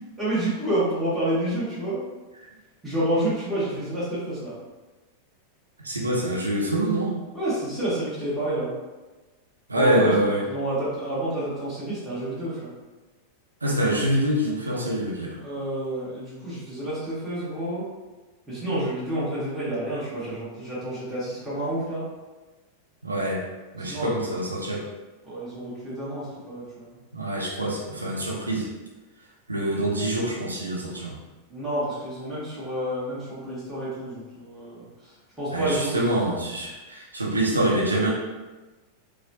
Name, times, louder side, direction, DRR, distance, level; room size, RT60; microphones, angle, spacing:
voice 1, 0.2-2.0 2.8-4.6 7.3-8.7 9.7-12.7 15.4-17.8 18.5-22.0 23.7-24.1 25.2-26.9 31.5-35.1 35.4-36.0, right 1 dB, 5° right, -11 dB, 1.4 m, -29 dB
voice 2, 5.8-7.1 9.7-10.4 13.6-15.4 23.0-23.4 23.7-24.8 27.1-28.7 29.5-31.2 35.5-38.1, right 1 dB, 80° right, -3 dB, 0.8 m, -25 dB
4.6 x 2.1 x 2.7 m, 1.2 s
figure-of-eight pair, 90°, 0 cm